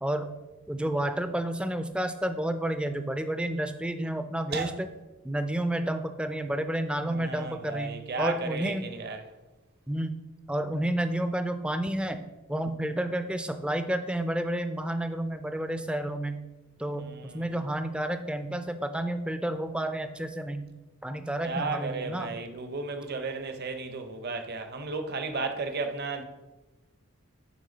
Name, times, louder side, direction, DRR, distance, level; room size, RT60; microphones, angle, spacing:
voice 1, 0.0-0.3 0.7-4.9 5.2-8.9 9.9-10.2 10.5-16.4 16.8-17.1 17.3-20.7 21.0-22.4, right 1 dB, 5° right, 0.3 m, -30 dB
voice 2, 7.1-9.2 17.0-17.6 21.4-26.2, right 3 dB, 45° right, 0.7 m, -34 dB
10.0 x 3.8 x 3.9 m
head